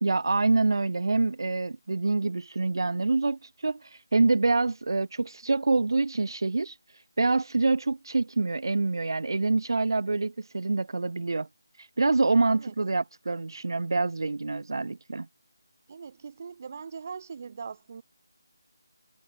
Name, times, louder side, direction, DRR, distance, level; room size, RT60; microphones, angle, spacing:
voice 1, 0.0-6.8 7.2-11.5 11.8-15.3, right 3 dB, 70° right, 0.3 m, -26 dB
voice 2, 15.9-18.0, right 6 dB, 40° right, 1.0 m, -41 dB
figure-of-eight pair, 165°, 2 cm